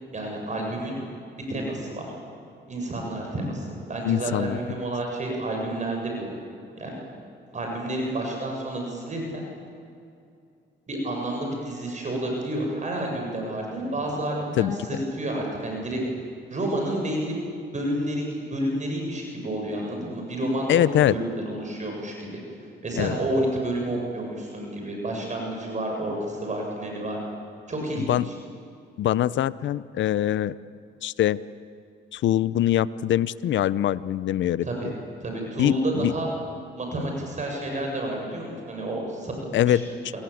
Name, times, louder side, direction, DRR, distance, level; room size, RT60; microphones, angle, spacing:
voice 1, 0.1-1.0 1.5-2.1 2.7-6.3 6.8-7.0 7.5-9.5 10.9-16.0 16.5-17.4 17.7-22.4 22.8-27.2 27.7-28.4 34.6-34.8 35.2-36.3 36.8-39.8, right 1 dB, 35° right, 1 dB, 7.4 m, -30 dB
voice 2, 4.0-4.6 14.6-14.7 20.7-21.2 23.0-23.2 28.0-28.3 29.0-30.5 31.0-31.4 32.1-34.6 35.6-36.1 39.5-39.9, left 12 dB, 70° left, 17 dB, 0.8 m, -23 dB
28.0 x 22.0 x 8.6 m, 2.5 s
cardioid pair, 90°, 20 cm